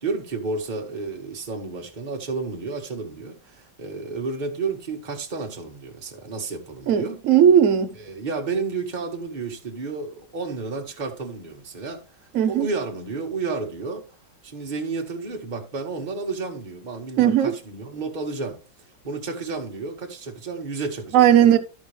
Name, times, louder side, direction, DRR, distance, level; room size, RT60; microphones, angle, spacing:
voice 1, 0.0-7.2 8.0-14.0 14.4-21.6, right 4 dB, 25° right, 1.5 m, -31 dB
voice 2, 6.9-7.9 12.3-12.7 17.2-17.5 21.1-21.6, right 9 dB, 60° right, 0.9 m, -16 dB
13.0 x 5.1 x 3.3 m
omnidirectional pair, 2.2 m